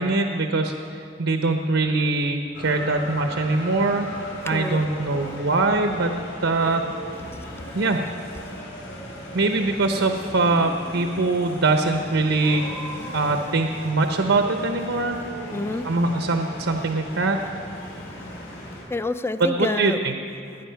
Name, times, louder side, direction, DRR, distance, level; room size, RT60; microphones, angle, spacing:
voice 1, 0.0-4.1 4.4-6.1 6.4-6.8 7.7-8.0 9.3-12.7 13.1-15.2 15.5-15.6 15.8-17.4 19.4-20.2, right 3 dB, 80° right, 5 dB, 0.8 m, -22 dB
sound 1, 2.5-18.8, equal, 90° left, 4.4 m, -37 dB
voice 2, 4.4-4.8 5.2-5.4 6.6-6.7 7.1-8.6 11.4-11.5 11.8-11.9 12.4-12.5 13.0-13.4 13.7-14.3 15.5-16.2 16.8-17.0 17.4-17.5 17.7-20.1, left 2 dB, 15° left, 11 dB, 0.4 m, -33 dB
19.0 x 9.6 x 5.7 m, 2.5 s
head